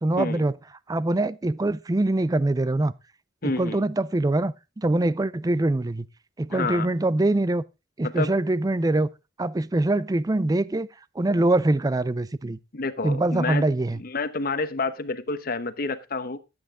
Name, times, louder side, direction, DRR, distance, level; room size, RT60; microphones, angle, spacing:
voice 1, 0.0-0.5 0.9-2.9 3.6-6.1 6.4-7.6 8.0-9.1 9.4-10.9 11.2-12.6 13.0-14.0, right 2 dB, 20° right, 0.4 m, -23 dB
voice 2, 3.4-3.8 6.5-6.9 8.0-8.3 12.7-13.7 14.0-16.4, left 3 dB, 55° left, 1.0 m, -29 dB
12.5 x 8.8 x 3.7 m
head